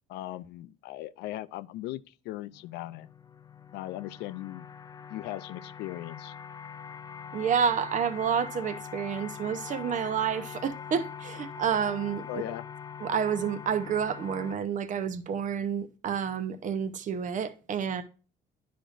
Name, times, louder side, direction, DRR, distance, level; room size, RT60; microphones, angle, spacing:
voice 1, 0.1-3.1 3.7-4.6 5.1-6.3 12.3-12.7, left 15 dB, 85° left, 0.4 m, -38 dB
sound 1, 2.5-14.6, left 7 dB, 25° left, 0.4 m, -43 dB
voice 2, 7.3-12.4 13.0-18.0, right 7 dB, 50° right, 0.7 m, -29 dB
10.0 x 5.1 x 2.5 m
cardioid pair, 110°, 17 cm